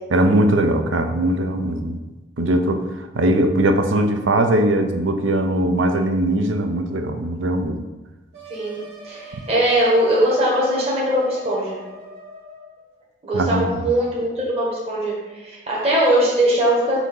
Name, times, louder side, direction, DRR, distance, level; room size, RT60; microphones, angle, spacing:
voice 1, 0.1-2.0 2.4-2.8 3.1-7.8 13.3-13.9, right 1 dB, 90° right, 7 dB, 0.6 m, -20 dB
sound 1, 8.3-12.8, right 2 dB, 55° right, 1.8 m, -41 dB
voice 2, 8.5-11.8 13.2-17.0, right 1 dB, 30° right, -5 dB, 1.4 m, -20 dB
6.0 x 2.8 x 5.4 m, 1.1 s
head